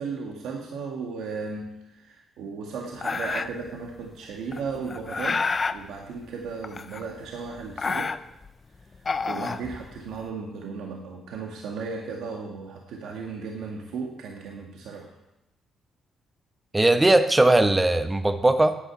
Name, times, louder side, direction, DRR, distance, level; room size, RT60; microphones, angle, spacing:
voice 1, 0.0-8.1 9.3-15.1, right 4 dB, 80° right, 0 dB, 2.0 m, -35 dB
sound 1, 3.0-3.7 4.5-5.8 6.6-7.3 7.6-8.5 8.9-10.2, left 4 dB, 35° left, 0.7 m, -29 dB
voice 2, 16.7-18.8, right 2 dB, 15° right, 9 dB, 1.1 m, -19 dB
11.0 x 9.0 x 8.4 m, 0.91 s
cardioid pair, 90°, 0 cm